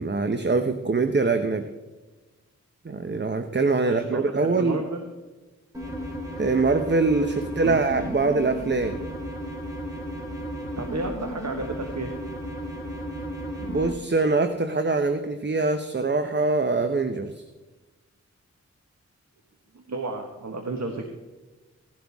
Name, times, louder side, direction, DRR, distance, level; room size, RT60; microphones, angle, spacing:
voice 1, 0.0-1.7 2.8-4.8 6.4-9.0 13.7-17.4, right 3 dB, 35° right, 8 dB, 0.9 m, -23 dB
voice 2, 3.8-5.1 7.5-7.8 10.8-12.1 19.7-21.0, right 3 dB, 65° right, 4 dB, 1.4 m, -32 dB
sound 1, 5.7-13.9, equal, 10° right, 3.4 m, -34 dB
17.0 x 11.5 x 3.6 m, 1.2 s
wide cardioid pair, 60°, 30 cm